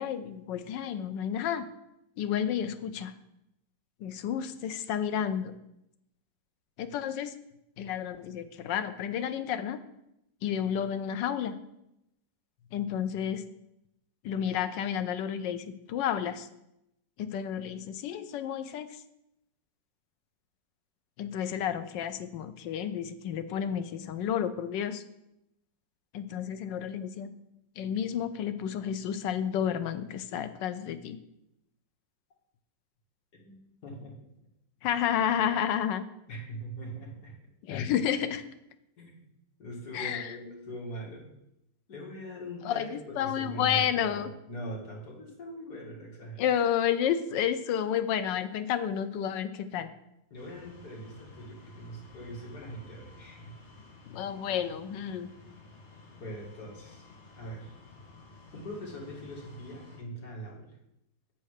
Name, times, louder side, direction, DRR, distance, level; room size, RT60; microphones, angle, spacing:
voice 1, 0.0-1.6 2.2-3.1 4.0-5.5 6.8-7.3 7.8-9.8 10.4-11.5 12.7-13.4 14.2-16.5 17.2-19.0 21.2-25.0 26.1-27.3 27.8-31.2 34.8-36.0 37.7-38.4 39.9-40.3 42.6-44.3 46.4-49.9 54.1-55.3, left 9 dB, 80° left, 11 dB, 1.3 m, -31 dB
voice 2, 33.8-34.3 36.3-37.3 39.0-39.2 39.6-41.3 41.9-46.5 50.3-53.6 56.1-57.1 57.4-57.8 58.5-60.8, right 1 dB, 60° left, -2 dB, 2.5 m, -42 dB
sound 1, 50.3-60.0, left 2 dB, 40° left, 2.1 m, -53 dB
8.3 x 4.4 x 6.4 m, 0.83 s
omnidirectional pair, 1.9 m